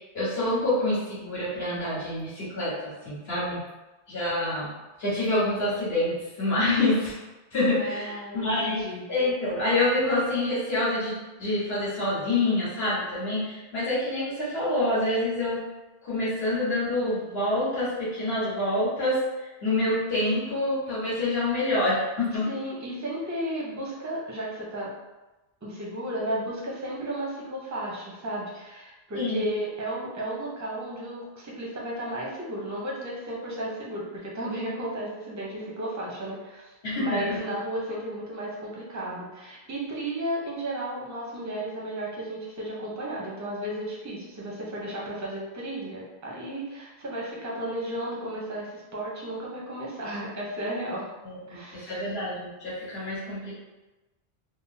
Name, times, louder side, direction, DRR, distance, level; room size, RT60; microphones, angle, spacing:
voice 1, 0.1-3.6 4.1-4.7 5.0-7.2 7.5-15.6 16.0-22.5 29.1-29.4 36.8-37.4 51.2-53.5, left 1 dB, 70° left, -10 dB, 1.6 m, -27 dB
voice 2, 7.6-9.1 22.4-24.9 25.6-51.1 51.5-52.1, right 1 dB, 20° right, -4 dB, 0.5 m, -34 dB
3.5 x 2.0 x 2.6 m, 1.1 s
omnidirectional pair, 1.1 m